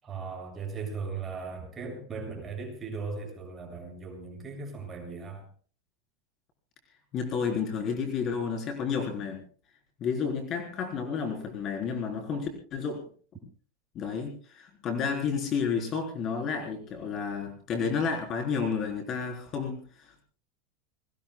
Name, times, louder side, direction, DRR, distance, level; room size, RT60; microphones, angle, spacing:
voice 1, 0.0-5.5, right 4 dB, 20° right, 2 dB, 6.9 m, -38 dB
voice 2, 7.1-9.4 10.0-13.1 13.9-20.2, left 6 dB, 30° left, 2 dB, 4.0 m, -31 dB
29.5 x 20.5 x 2.3 m, 0.41 s
supercardioid pair, 160°, 0 cm